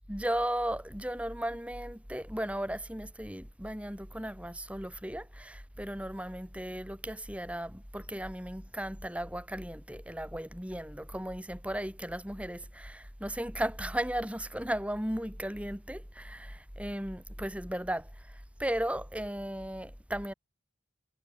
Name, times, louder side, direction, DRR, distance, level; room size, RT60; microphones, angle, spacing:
voice 1, 0.1-18.1 18.6-20.3, right 1 dB, 5° right, 3.8 m, -36 dB
head